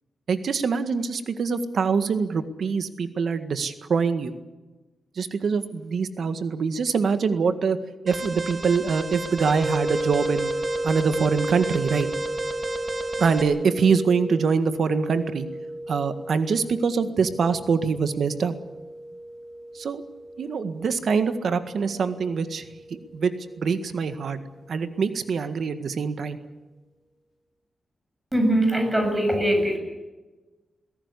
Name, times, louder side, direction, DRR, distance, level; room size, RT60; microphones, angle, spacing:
voice 1, 0.3-4.3 5.2-7.8 8.0-10.5 10.8-12.1 13.2-15.5 15.9-18.5 19.7-20.0 20.4-23.3 23.6-24.4 24.7-26.4, right 5 dB, 70° right, 10 dB, 1.7 m, -24 dB
Alarm, 8.1-13.4, right 2 dB, 40° right, 3.6 m, -33 dB
sound 1, 9.5-24.4, right 1 dB, 60° left, 3.0 m, -34 dB
voice 2, 28.3-29.8, right 1 dB, 15° right, 4 dB, 7.3 m, -21 dB
21.5 x 17.0 x 9.9 m, 1.1 s
wide cardioid pair, 105°, 0 cm